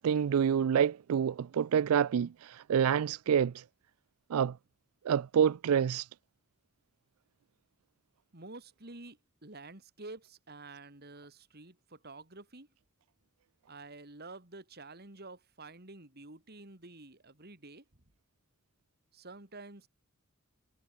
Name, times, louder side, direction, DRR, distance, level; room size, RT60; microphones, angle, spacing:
voice 1, 0.0-3.6 4.3-4.6 5.1-6.1, right 8 dB, 85° right, 0.4 m, -27 dB
voice 2, 8.3-12.7 13.7-17.8 19.1-19.9, right 2 dB, 50° right, 3.0 m, -49 dB
head